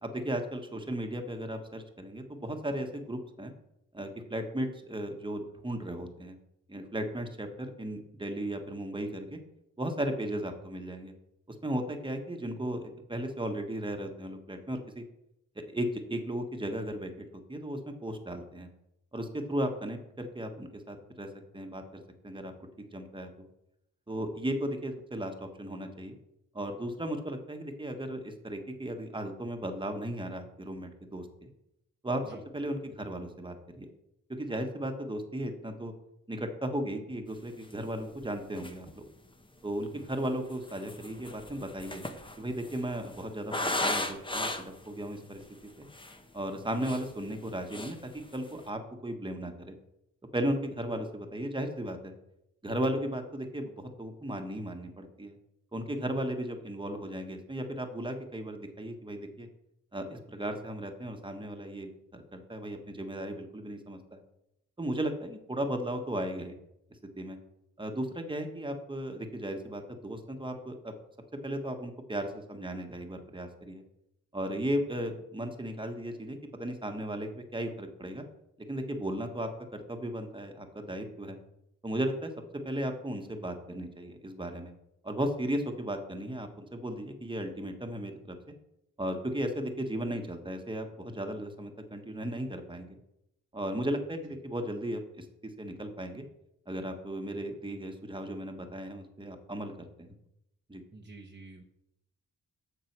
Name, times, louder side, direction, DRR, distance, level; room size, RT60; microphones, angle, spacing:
voice 1, 0.0-3.5 3.9-6.4 6.7-9.4 9.8-11.1 11.6-15.0 15.5-18.7 19.1-21.3 21.5-22.5 22.8-23.5 24.1-26.1 26.5-31.5 32.0-33.9 34.3-35.9 36.3-39.0 39.6-42.0 42.4-45.4 45.8-45.9 46.3-49.8 50.3-52.1 52.6-55.4 55.7-59.5 59.9-64.2 64.8-66.5 67.2-67.4 67.8-70.9 71.4-73.8 74.3-78.2 78.7-81.4 81.8-82.3 82.6-84.7 85.0-88.4 89.0-92.9 93.5-96.2 96.7-99.9 100.7-100.8, right 1 dB, 15° right, 5 dB, 1.4 m, -36 dB
sound 1, 37.7-37.8 38.2-38.3 38.5-39.0 39.8-44.9 45.4-45.5 45.8-46.2 46.6-47.5 47.7-48.0 48.3-48.6, left 2 dB, 15° left, 1.0 m, -36 dB
voice 2, 100.9-101.6, right 3 dB, 30° right, 0 dB, 1.1 m, -48 dB
7.6 x 6.7 x 6.0 m, 0.83 s
cardioid pair, 75°, 32 cm